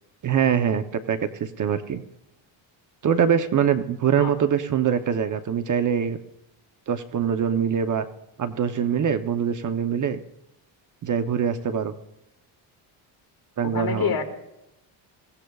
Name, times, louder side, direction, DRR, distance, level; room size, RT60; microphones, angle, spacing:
voice 1, 0.2-2.0 3.0-6.2 6.9-8.0 8.4-10.2 11.0-11.9 13.6-14.1, right 8 dB, 40° right, 9 dB, 0.8 m, -23 dB
voice 2, 13.6-14.2, left 7 dB, 45° left, 2 dB, 2.5 m, -27 dB
23.0 x 16.5 x 2.4 m, 0.87 s
cardioid pair, 125°, 48 cm